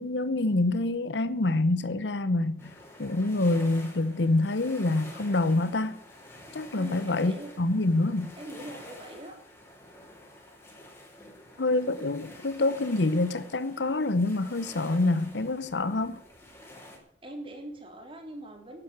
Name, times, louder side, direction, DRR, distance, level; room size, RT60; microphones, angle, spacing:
voice 1, 0.0-2.7 3.0-6.0 6.5-8.3 11.6-16.2, left 2 dB, 80° left, 0.9 m, -26 dB
sound 1, 2.6-17.0, left 1 dB, 15° left, 5.0 m, -48 dB
voice 2, 6.7-7.5 8.4-9.4 17.2-18.8, right 1 dB, 30° right, 3.7 m, -42 dB
11.5 x 11.5 x 8.9 m
head